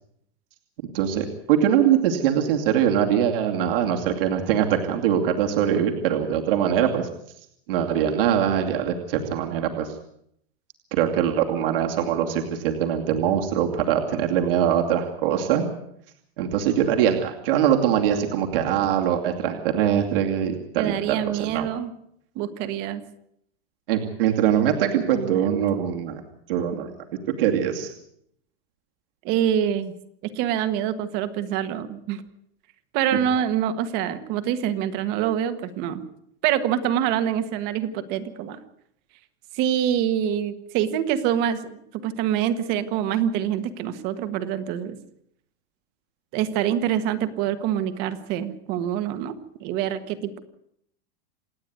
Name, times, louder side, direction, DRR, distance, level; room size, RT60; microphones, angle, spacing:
voice 1, 0.9-7.1 7.7-10.0 10.9-15.7 16.4-21.7 23.9-26.2 26.5-26.9 27.3-27.9, right 9 dB, 65° right, 2 dB, 2.6 m, -22 dB
voice 2, 20.8-21.9 22.3-23.0 25.1-25.4 29.2-29.9 30.2-32.2 32.9-36.0 36.4-38.6 39.5-45.0 46.3-49.3 49.6-50.4, right 10 dB, 30° right, 11 dB, 1.5 m, -25 dB
27.5 x 9.9 x 9.5 m, 0.73 s
supercardioid pair, 180°, 30 cm